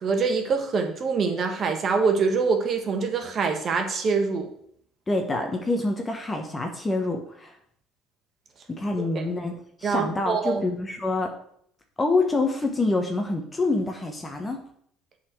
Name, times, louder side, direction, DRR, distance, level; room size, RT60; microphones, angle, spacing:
voice 1, 0.0-4.5 9.1-9.3 9.8-10.6, right 5 dB, 45° right, 4 dB, 1.4 m, -24 dB
voice 2, 5.1-7.5 8.7-9.5 9.8-11.3 12.0-14.6, left 2 dB, 20° left, 3 dB, 1.2 m, -26 dB
7.4 x 4.3 x 6.2 m, 0.66 s
supercardioid pair, 95°, 0 cm